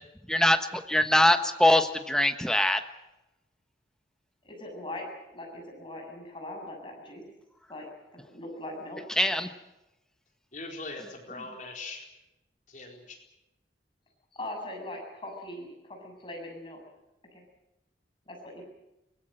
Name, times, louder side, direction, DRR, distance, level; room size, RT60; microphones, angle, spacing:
voice 1, 0.3-2.8 9.2-9.5, left 1 dB, 5° left, 7 dB, 1.2 m, -23 dB
voice 2, 4.4-7.2 7.7-7.9 8.3-9.0 14.3-16.8 17.3-17.4 18.3-18.6, left 1 dB, 30° left, 0 dB, 7.1 m, -40 dB
voice 3, 10.5-12.1 12.7-13.2, left 3 dB, 45° left, 1 dB, 4.3 m, -41 dB
23.5 x 19.5 x 7.8 m, 0.95 s
head